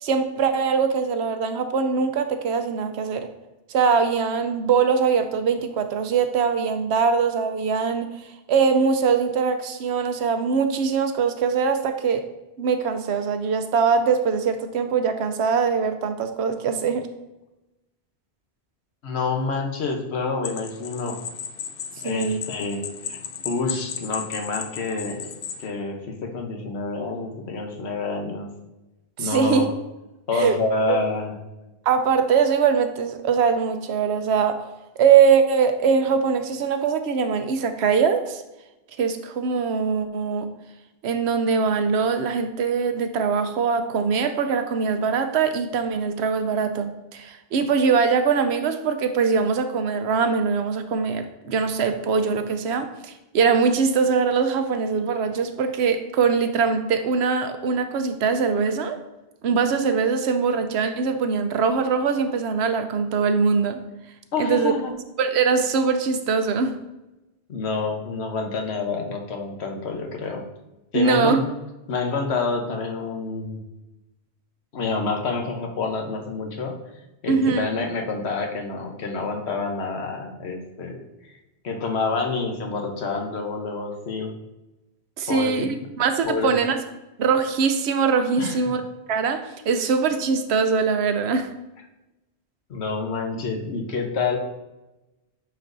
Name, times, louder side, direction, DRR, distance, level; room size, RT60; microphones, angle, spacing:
voice 1, 0.0-3.3 3.7-8.1 8.5-12.2 12.6-17.1 22.0-22.4 29.2-29.7 30.3-30.5 30.9-31.0 31.9-34.7 35.0-38.4 39.0-40.5 41.0-59.0 59.4-63.8 64.4-64.7 65.2-66.8 70.9-71.4 77.3-77.7 85.2-86.8 87.2-88.8 89.1-91.5, right 5 dB, 85° right, 8 dB, 0.9 m, -22 dB
voice 2, 19.0-21.2 22.0-22.8 23.1-23.2 23.4-25.3 25.6-28.5 29.2-29.7 30.3-31.3 64.3-64.9 67.5-70.4 70.9-71.4 71.9-73.6 74.7-76.8 77.2-81.0 81.6-84.3 85.3-85.7 86.2-86.5 88.4-88.6 92.7-94.4, left 4 dB, 85° left, 3 dB, 1.2 m, -27 dB
sound 1, 20.4-25.7, left 8 dB, 65° left, 0.7 m, -35 dB
9.0 x 4.3 x 2.6 m, 1.0 s
omnidirectional pair, 1.1 m